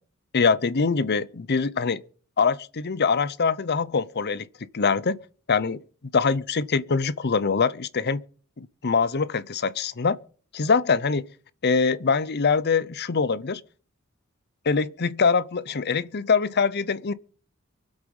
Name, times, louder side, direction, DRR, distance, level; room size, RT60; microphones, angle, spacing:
voice 1, 0.3-2.0 2.4-4.5 4.7-5.2 5.5-5.8 6.1-8.2 8.6-10.2 10.5-11.3 11.6-13.6 14.7-17.1, left 5 dB, 50° left, 0.7 m, -23 dB
24.0 x 8.0 x 5.4 m
head